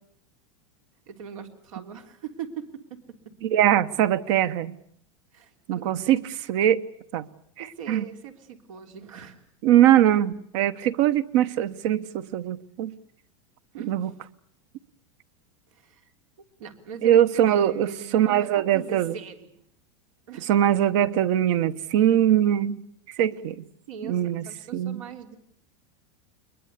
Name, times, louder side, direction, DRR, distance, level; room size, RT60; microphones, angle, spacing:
voice 1, 1.1-3.0 5.3-5.9 7.6-9.4 13.7-14.1 15.7-16.1 16.6-19.5 20.3-20.5 23.9-25.4, right 7 dB, 85° right, 3.6 m, -41 dB
voice 2, 3.4-4.8 5.7-6.2 6.5-6.8 7.1-7.2 7.9-8.0 9.6-12.9 13.9-14.1 17.0-19.1 20.5-22.8 23.2-23.6 24.0-24.4 24.7-25.0, right 11 dB, 60° right, 1.2 m, -21 dB
22.0 x 21.5 x 8.3 m
supercardioid pair, 140°, 17 cm